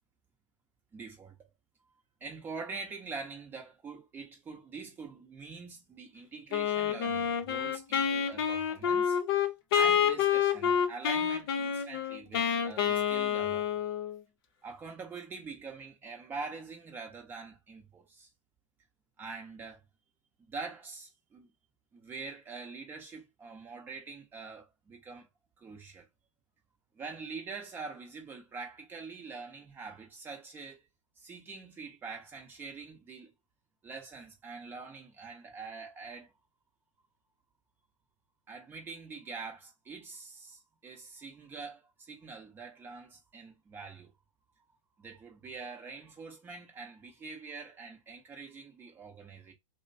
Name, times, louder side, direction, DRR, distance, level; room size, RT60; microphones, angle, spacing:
voice 1, 0.9-1.5 2.2-9.2 9.7-13.7 14.6-18.3 19.2-19.8 20.5-21.5 21.9-25.3 25.6-26.1 26.9-30.9 31.2-33.3 33.8-36.3 38.5-44.1 45.0-49.5, right 4 dB, 10° right, 0.8 m, -44 dB
Wind instrument woodwind instrument, 6.5-14.2, left 8 dB, 45° left, 0.7 m, -28 dB
2.9 x 2.1 x 2.6 m
hypercardioid pair, 140°, 16 cm